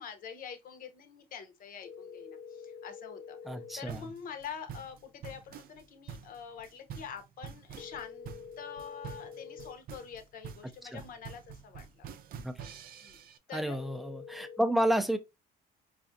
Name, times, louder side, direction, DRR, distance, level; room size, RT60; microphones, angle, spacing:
voice 1, 0.0-12.1 13.0-13.2 13.5-13.8, left 7 dB, 55° left, 0.8 m, -46 dB
sound 1, 1.8-3.8 7.8-9.8 13.8-14.6, left 6 dB, 90° left, 0.5 m, -47 dB
voice 2, 3.5-4.0 10.9-11.0 12.4-12.6 13.5-15.2, right 1 dB, ahead, 0.5 m, -30 dB
sound 2, 3.9-13.4, right 7 dB, 60° right, 0.5 m, -46 dB
4.7 x 2.4 x 2.6 m
cardioid pair, 110°, 17 cm